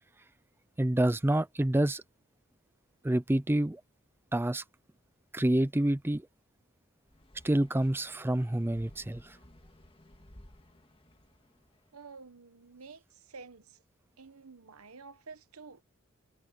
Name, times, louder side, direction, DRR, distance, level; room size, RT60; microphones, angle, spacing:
voice 1, 0.8-2.0 3.0-3.8 4.3-4.6 5.3-6.3 7.4-9.4, right 1 dB, 10° right, 0.5 m, -27 dB
sound 1, 7.1-11.9, left 1 dB, 25° left, 1.8 m, -57 dB
voice 2, 11.9-13.8 14.2-15.8, right 4 dB, 85° right, 1.2 m, -50 dB
head